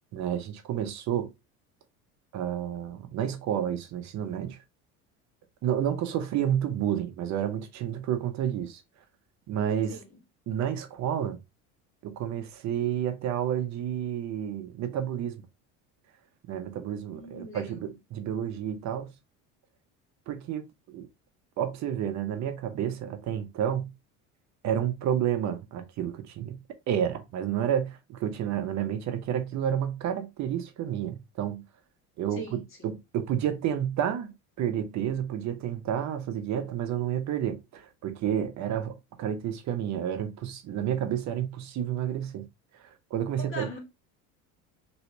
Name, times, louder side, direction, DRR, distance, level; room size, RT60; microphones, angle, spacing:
voice 1, 0.1-1.3 2.3-4.6 5.6-8.8 9.5-10.0 10.5-11.4 12.0-15.4 16.5-19.1 20.3-21.1 21.6-23.9 24.6-26.6 26.9-31.6 32.2-32.6 33.1-42.4 43.1-43.7, right 9 dB, 50° right, 0.8 m, -30 dB
voice 2, 9.9-10.2 17.1-17.9 32.3-32.9 43.4-43.8, left 1 dB, 35° left, 1.7 m, -41 dB
3.1 x 3.1 x 2.8 m
supercardioid pair, 110°, 37 cm